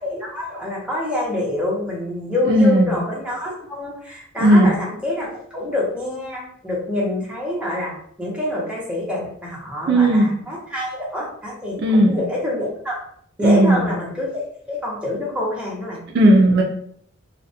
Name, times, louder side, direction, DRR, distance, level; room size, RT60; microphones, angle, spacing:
voice 1, 0.0-5.3 5.5-13.0 13.4-14.4 14.7-16.3, left 1 dB, 5° right, -5 dB, 0.6 m, -26 dB
voice 2, 2.5-2.9 4.4-4.7 9.9-10.3 11.8-12.2 13.4-13.9 16.1-16.6, right 1 dB, 50° right, 0 dB, 0.3 m, -14 dB
2.4 x 2.0 x 2.6 m, 0.64 s
head